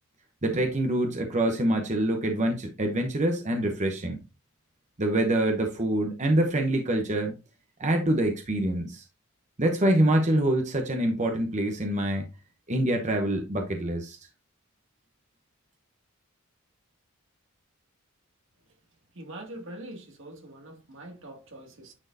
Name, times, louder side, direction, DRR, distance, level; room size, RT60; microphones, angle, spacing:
voice 1, 0.4-4.2 5.0-7.3 7.8-9.0 9.6-12.2 12.7-14.2, right 1 dB, 35° right, 0.9 m, -25 dB
voice 2, 19.1-21.9, right 1 dB, 60° right, 2.3 m, -43 dB
9.8 x 4.4 x 2.8 m
head